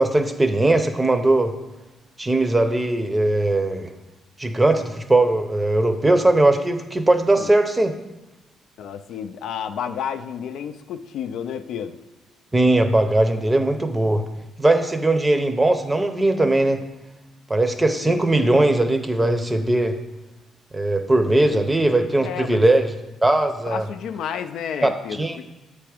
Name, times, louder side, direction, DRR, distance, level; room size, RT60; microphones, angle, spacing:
voice 1, 0.0-1.5 2.2-3.9 4.4-7.9 12.5-14.2 14.6-16.8 17.5-20.0 20.7-22.9 23.2-23.8 24.8-24.9 25.2-25.4, right 2 dB, 15° right, 7 dB, 0.6 m, -19 dB
voice 2, 8.8-12.0 18.0-18.2 21.5-21.6 21.9-22.6 23.7-25.5, left 8 dB, 75° left, 9 dB, 0.3 m, -31 dB
7.7 x 3.4 x 4.9 m, 1.0 s
cardioid pair, 90°, 0 cm